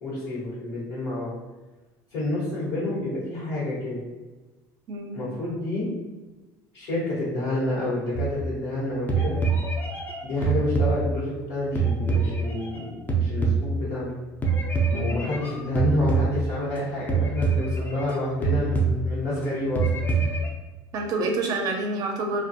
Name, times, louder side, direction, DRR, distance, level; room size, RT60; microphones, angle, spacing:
voice 1, 0.0-1.3 2.1-4.1 5.1-5.9 6.7-9.4 10.2-14.1 14.9-19.9 20.1-20.4, left 1 dB, 80° left, -9 dB, 1.1 m, -29 dB
voice 2, 4.9-5.2 14.9-15.2 20.9-22.4, right 2 dB, 45° right, 3 dB, 0.5 m, -28 dB
sound 1, 8.1-8.8 9.1-11.4 11.8-14.1 14.4-16.8 17.1-18.2 18.4-19.4 19.8-20.5, right 4 dB, 20° left, 0.4 m, -25 dB
2.5 x 2.3 x 2.6 m, 1.2 s
cardioid pair, 135°, 9 cm